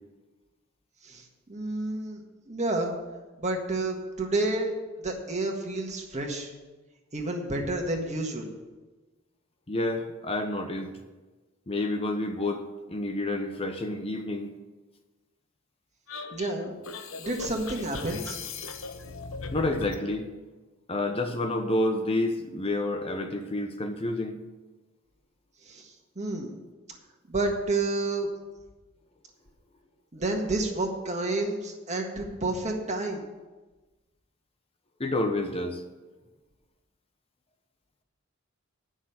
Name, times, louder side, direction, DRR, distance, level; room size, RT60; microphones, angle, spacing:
voice 1, 1.0-2.9 3.4-6.5 7.1-8.5 16.3-18.4 25.6-26.5 27.3-28.3 30.1-33.2, right 2 dB, 35° right, 2 dB, 1.6 m, -30 dB
voice 2, 9.7-10.9 11.7-14.5 19.5-20.3 20.9-24.4 35.0-35.8, left 2 dB, 30° left, 5 dB, 0.9 m, -29 dB
sound 1, 16.1-20.0, left 4 dB, 75° left, 1.0 m, -38 dB
9.9 x 6.3 x 8.6 m, 1.2 s
head